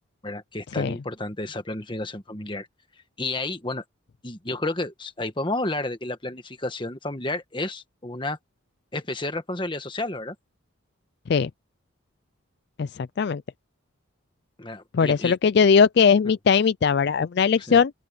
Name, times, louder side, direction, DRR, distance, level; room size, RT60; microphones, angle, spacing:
voice 1, 0.2-2.7 3.2-3.8 4.2-8.4 8.9-10.3 14.6-15.3 17.7-17.8, left 2 dB, 25° left, 1.4 m, -31 dB
voice 2, 12.8-13.4 14.9-17.9, left 6 dB, 50° left, 0.3 m, -20 dB
open air
head